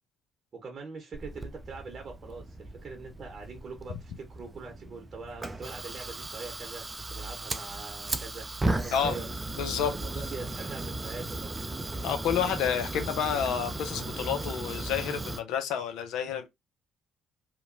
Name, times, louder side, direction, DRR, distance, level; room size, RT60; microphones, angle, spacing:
voice 1, 0.6-8.5 8.7-9.3 9.9-11.5, right 4 dB, 45° right, 0.8 m, -43 dB
Fire, 1.1-15.4, right 2 dB, 20° right, 0.4 m, -36 dB
voice 2, 8.9-9.2 9.6-9.9 12.0-16.5, left 8 dB, 70° left, 0.6 m, -29 dB
2.9 x 2.2 x 2.5 m
hypercardioid pair, 55°, 0 cm